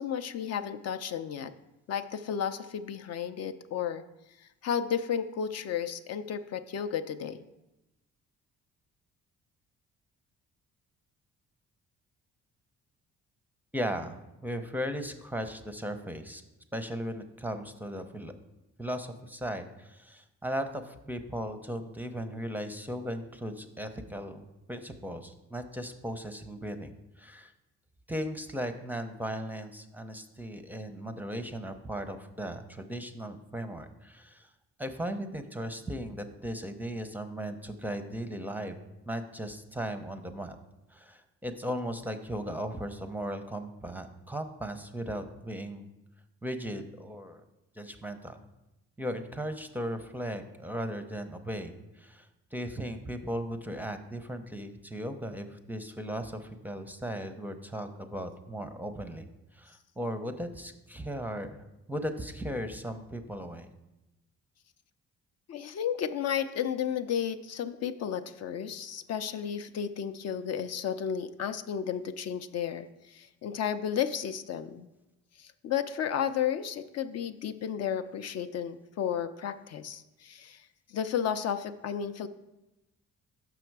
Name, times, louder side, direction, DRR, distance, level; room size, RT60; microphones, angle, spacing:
voice 1, 0.0-1.5 1.9-4.0 4.4-7.4 65.5-74.9 75.4-82.3, left 8 dB, 55° left, 10 dB, 0.4 m, -33 dB
voice 2, 13.7-16.4 16.7-18.3 18.8-27.5 28.1-34.5 34.8-38.8 39.1-40.6 40.9-45.9 46.4-47.4 47.7-48.4 49.0-63.7, equal, 5° right, 7 dB, 0.5 m, -37 dB
6.2 x 5.9 x 4.6 m, 0.96 s
cardioid pair, 90°, 30 cm